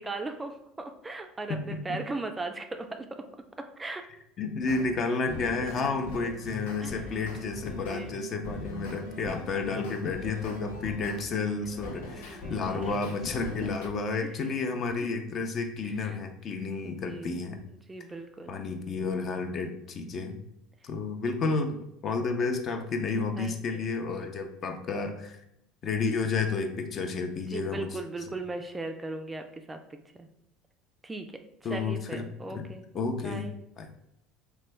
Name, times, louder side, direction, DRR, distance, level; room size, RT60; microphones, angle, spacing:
voice 1, 0.0-3.1 3.8-4.0 5.6-5.7 6.8-7.0 7.4-8.1 11.9-13.0 14.2-14.4 15.0-15.1 15.8-16.2 16.5-17.3 17.6-18.6 23.0-23.9 27.5-30.3 31.0-32.9 33.2-33.5, right 3 dB, 15° right, 6 dB, 0.3 m, -39 dB
voice 2, 1.5-2.0 4.4-17.6 18.5-20.4 20.8-21.8 22.0-25.4 25.8-27.9 31.6-32.2 32.5-32.6 32.9-33.9, left 4 dB, 45° left, 5 dB, 0.5 m, -31 dB
sound 1, 4.6-4.9 5.3-11.2 11.6-13.9, left 2 dB, 90° left, 0.6 m, -41 dB
3.1 x 2.2 x 3.3 m, 0.80 s
supercardioid pair, 90°, 0 cm